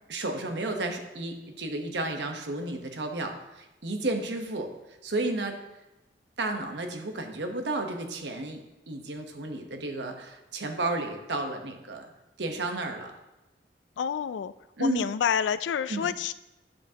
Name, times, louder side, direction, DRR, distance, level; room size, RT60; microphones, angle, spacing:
voice 1, 0.1-4.7 5.0-5.6 6.4-8.6 8.9-12.1 12.4-13.1 14.8-15.1 15.9-16.1, right 2 dB, 75° right, 4 dB, 1.0 m, -32 dB
voice 2, 14.0-14.5 14.8-16.3, left 7 dB, 85° left, 14 dB, 0.3 m, -28 dB
10.0 x 7.1 x 2.9 m, 0.98 s
head